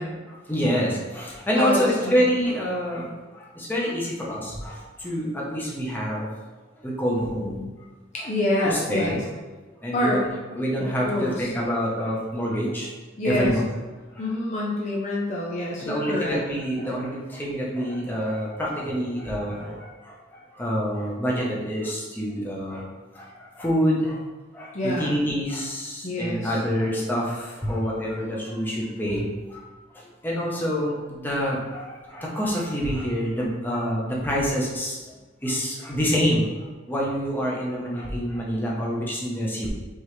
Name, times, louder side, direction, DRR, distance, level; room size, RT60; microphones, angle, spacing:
voice 1, 0.3-6.3 6.8-7.6 8.6-9.2 9.8-10.3 10.5-12.9 13.2-13.6 14.1-14.2 15.8-22.8 23.1-24.2 24.5-29.6 29.9-35.0 35.4-36.5 36.9-39.7, equal, 10° left, -4 dB, 0.9 m, -27 dB
voice 2, 1.5-2.3 8.1-9.2 9.9-10.3 10.8-11.5 13.2-13.5 14.2-16.4 24.7-25.2 26.0-26.6, left 1 dB, 35° left, -4 dB, 0.6 m, -27 dB
5.3 x 3.1 x 3.2 m, 1.3 s
head